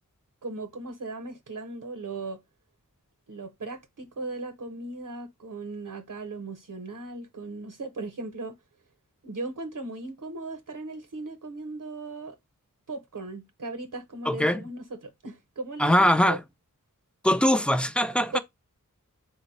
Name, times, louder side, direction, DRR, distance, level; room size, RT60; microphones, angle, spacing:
voice 1, 0.4-2.4 3.3-8.6 9.2-12.4 12.9-16.4 18.3-18.4, right 3 dB, 70° right, 0.8 m, -37 dB
voice 2, 14.2-14.6 15.8-16.4 17.2-18.4, left 1 dB, 5° left, 0.4 m, -22 dB
4.1 x 2.1 x 4.0 m
wide cardioid pair, 50°, 32 cm